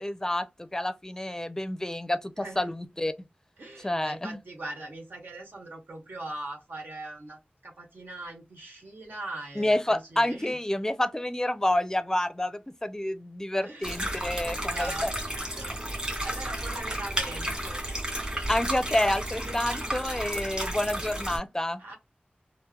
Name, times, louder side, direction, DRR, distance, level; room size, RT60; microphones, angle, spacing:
voice 1, 0.0-3.1 3.8-4.4 9.6-14.9 18.5-21.8, left 1 dB, 15° left, 0.5 m, -29 dB
voice 2, 2.4-2.7 3.6-10.6 13.6-15.2 15.5-17.8 19.3-19.6 20.0-20.2 21.8-22.0, right 2 dB, 80° right, 1.4 m, -41 dB
sound 1, 13.8-21.4, right 1 dB, 30° right, 1.8 m, -32 dB
4.3 x 2.1 x 2.3 m
wide cardioid pair, 65°, 3 cm